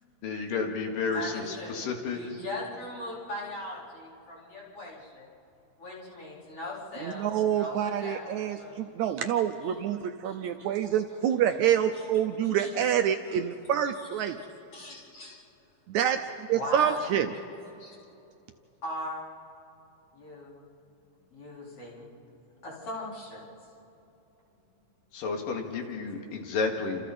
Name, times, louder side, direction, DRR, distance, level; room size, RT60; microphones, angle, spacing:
voice 1, 0.2-2.2 25.1-27.1, left 4 dB, 90° left, 2 dB, 3.6 m, -31 dB
voice 2, 1.1-1.8 2.1-5.3 5.8-8.7 9.0-9.1 10.2-10.7 11.9-12.0 12.4-12.7 13.3-13.4 14.7-15.4 16.5-17.0 17.8-18.0 18.8-19.3 20.1-20.6 21.3-22.1 22.6-23.5, left 1 dB, 45° left, -5 dB, 5.2 m, -39 dB
voice 3, 7.0-14.4 15.9-17.3, right 9 dB, 75° right, 7 dB, 1.8 m, -27 dB
29.0 x 27.5 x 4.2 m, 2.8 s
omnidirectional pair, 3.8 m